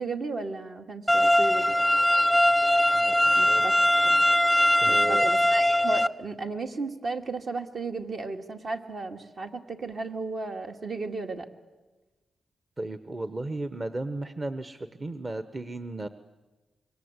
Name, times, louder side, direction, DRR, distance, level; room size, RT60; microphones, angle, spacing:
voice 1, 0.0-1.8 3.4-3.7 4.0-4.2 4.9-11.5, right 3 dB, 60° right, 3 dB, 2.2 m, -34 dB
sound 1, 1.1-6.1, left 1 dB, 5° right, 0.8 m, -21 dB
voice 2, 2.9-3.6 4.8-5.3 12.8-16.1, right 2 dB, 30° right, 11 dB, 1.0 m, -35 dB
26.5 x 23.0 x 8.1 m, 1.2 s
cardioid pair, 80°, 0 cm